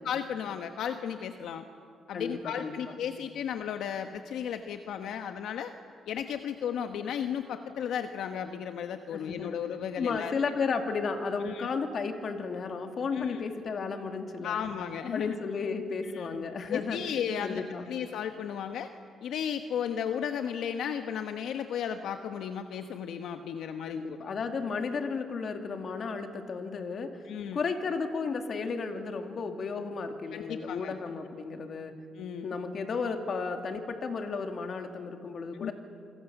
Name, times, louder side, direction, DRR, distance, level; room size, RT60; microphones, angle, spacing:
voice 1, 0.0-1.6 2.1-5.7 6.1-10.3 11.4-11.7 13.1-13.4 14.4-15.4 16.1-16.3 16.7-18.9 19.2-24.0 27.2-27.6 30.3-30.9 32.2-32.5 35.5-35.7, left 8 dB, 80° left, 7 dB, 1.1 m, -34 dB
voice 2, 2.1-2.8 9.1-9.6 10.0-14.6 15.0-17.0 17.4-17.8 23.9-27.2 27.5-32.0 32.4-35.7, left 4 dB, 50° left, 5 dB, 2.5 m, -33 dB
27.5 x 22.5 x 7.1 m, 2.6 s
cardioid pair, 90°, 0 cm